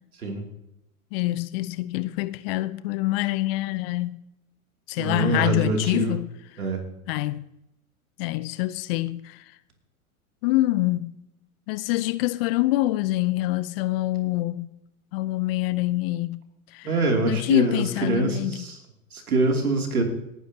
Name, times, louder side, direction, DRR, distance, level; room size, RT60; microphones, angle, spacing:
voice 1, 1.1-4.2 4.9-6.3 7.1-7.5 8.2-9.4 10.4-11.1 11.7-14.7 15.1-16.4 16.7-16.9 17.3-18.7, left 18 dB, 45° left, 0.7 m, -26 dB
voice 2, 4.9-6.1 6.6-6.8 16.8-18.8 19.1-20.0, right 2 dB, 85° right, 2.9 m, -24 dB
18.5 x 10.0 x 2.9 m
hypercardioid pair, 105°, 43 cm